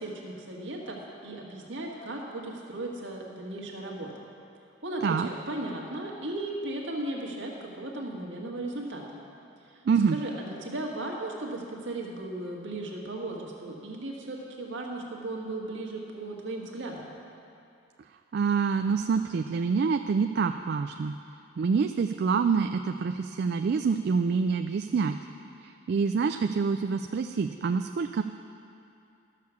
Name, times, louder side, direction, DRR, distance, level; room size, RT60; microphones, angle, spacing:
voice 1, 0.0-4.1 4.8-9.2 9.6-9.8 10.1-17.1, right 2 dB, 70° right, -1 dB, 1.7 m, -36 dB
voice 2, 9.8-10.2 18.3-21.1 21.6-25.2 25.6-28.2, right 5 dB, 55° right, 6 dB, 0.3 m, -26 dB
12.5 x 6.6 x 6.9 m, 2.6 s
head